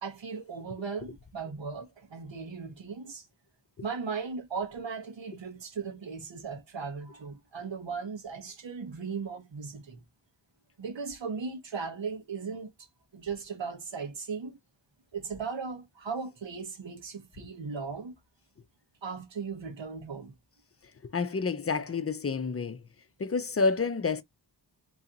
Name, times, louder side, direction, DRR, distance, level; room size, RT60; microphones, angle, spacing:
voice 1, 0.0-3.3 3.8-10.0 10.8-12.7 13.1-14.6 15.1-18.2 19.0-20.3, right 5 dB, 85° right, 1.2 m, -37 dB
voice 2, 21.0-22.8 23.2-24.2, left 4 dB, 35° left, 0.5 m, -29 dB
3.1 x 2.8 x 3.8 m
wide cardioid pair, 85°, 43 cm